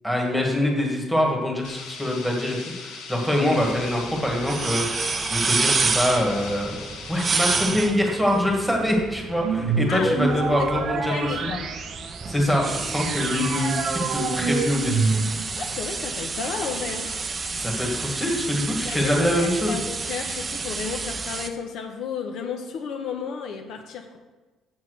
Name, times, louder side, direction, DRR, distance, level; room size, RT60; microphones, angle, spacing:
voice 1, 0.0-6.8 7.1-11.5 12.3-15.1 17.6-19.8, left 1 dB, ahead, -1 dB, 1.7 m, -24 dB
sound 1, 1.6-7.6, left 5 dB, 85° left, 1.7 m, -39 dB
sound 2, 3.5-21.5, right 4 dB, 20° right, 0.6 m, -30 dB
sound 3, 9.3-15.6, right 4 dB, 45° right, 0.9 m, -27 dB
voice 2, 9.9-10.2 10.5-10.7 10.9-11.7 15.5-17.1 18.8-19.1 19.7-24.2, left 6 dB, 60° left, 4 dB, 0.9 m, -32 dB
7.3 x 7.2 x 6.4 m, 1.2 s
cardioid pair, 160°, 0 cm